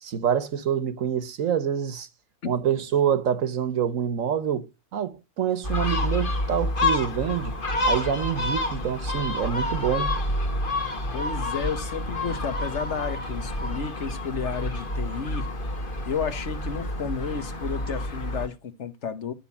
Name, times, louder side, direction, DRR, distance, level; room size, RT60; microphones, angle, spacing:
voice 1, 0.0-2.1 2.5-4.7 4.9-7.5 7.8-10.1, right 8 dB, 85° right, 1.4 m, -26 dB
Gull seagull, 5.6-18.5, left 1 dB, 45° left, 1.6 m, -28 dB
voice 2, 11.1-15.5 16.1-19.3, left 6 dB, 65° left, 1.4 m, -32 dB
11.5 x 5.9 x 8.3 m
omnidirectional pair, 1.3 m